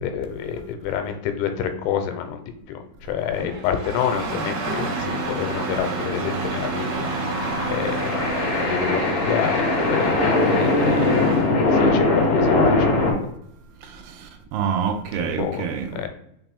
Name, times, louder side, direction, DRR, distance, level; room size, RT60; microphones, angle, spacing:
voice 1, 0.0-2.4 2.7-7.1 7.7-11.2 11.7-13.3 15.1-15.7 15.9-16.1, left 8 dB, 90° left, 7 dB, 2.6 m, -28 dB
Engine starting, 3.4-11.5, right 3 dB, 60° right, 1.9 m, -29 dB
sound 1, 6.7-13.1, left 2 dB, 55° left, 2.2 m, -21 dB
voice 2, 13.8-16.1, right 7 dB, 80° right, 4 dB, 2.3 m, -27 dB
5.9 x 2.6 x 3.4 m, 0.74 s
omnidirectional pair, 4.6 m